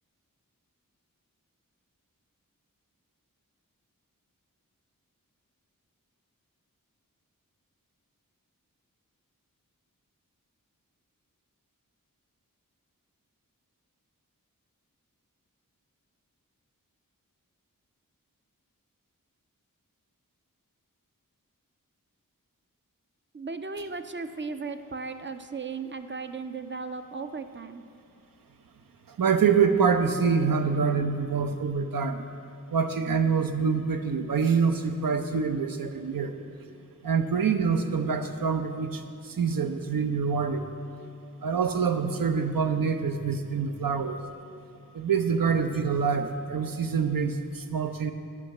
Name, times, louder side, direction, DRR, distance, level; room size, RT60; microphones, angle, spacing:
voice 1, 23.3-27.8, right 4 dB, 35° right, 9 dB, 0.4 m, -36 dB
voice 2, 29.1-32.2 32.7-36.3 37.0-40.6 41.4-44.2 44.9-48.1, right 6 dB, 80° right, 7 dB, 0.6 m, -26 dB
8.3 x 5.8 x 6.4 m, 2.6 s
wide cardioid pair, 55°, 34 cm